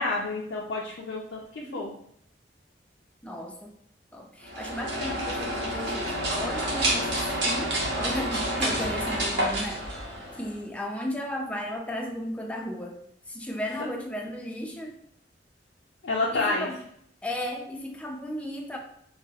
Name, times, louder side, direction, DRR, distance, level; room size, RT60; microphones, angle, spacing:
voice 1, 0.0-1.9 16.0-16.7, left 3 dB, 85° left, -4 dB, 0.4 m, -29 dB
voice 2, 1.6-1.9 3.2-3.7 4.1-9.9 10.4-13.0 13.3-15.0 16.3-16.8 17.2-18.8, equal, 5° left, 1 dB, 0.4 m, -35 dB
sound 1, 4.4-10.6, right 1 dB, 70° right, 0.9 m, -29 dB
4.1 x 2.0 x 2.3 m, 0.69 s
head